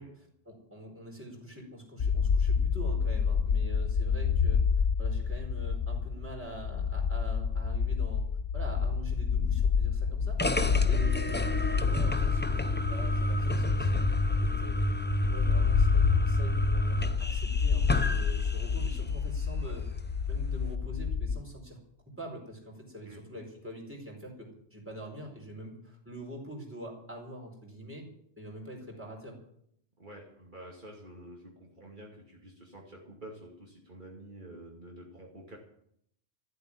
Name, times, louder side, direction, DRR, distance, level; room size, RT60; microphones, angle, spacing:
voice 1, 0.0-4.6 5.0-8.3 8.5-14.8 15.3-19.9 20.3-21.8 22.1-28.0 28.4-29.4, equal, 10° right, -1 dB, 4.6 m, -45 dB
sound 1, 2.0-21.4, left 6 dB, 60° left, 0.9 m, -28 dB
sound 2, 10.4-19.1, equal, 10° left, 0.7 m, -31 dB
voice 2, 30.0-35.6, right 1 dB, 50° right, -2 dB, 2.5 m, -49 dB
14.0 x 8.1 x 10.0 m, 0.71 s
omnidirectional pair, 1.1 m